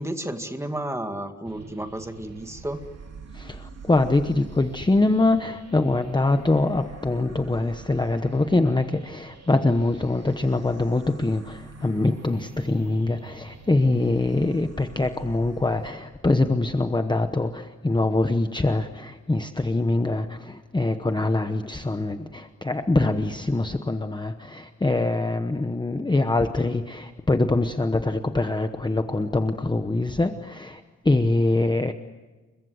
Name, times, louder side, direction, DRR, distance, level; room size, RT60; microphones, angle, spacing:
voice 1, 0.0-2.9, right 1 dB, 10° right, 6 dB, 2.1 m, -32 dB
sound 1, 1.4-15.9, right 4 dB, 60° right, 2.8 m, -45 dB
voice 2, 3.3-31.9, left 2 dB, 15° left, 7 dB, 1.0 m, -24 dB
29.5 x 23.0 x 8.0 m, 1.2 s
wide cardioid pair, 155°, 29 cm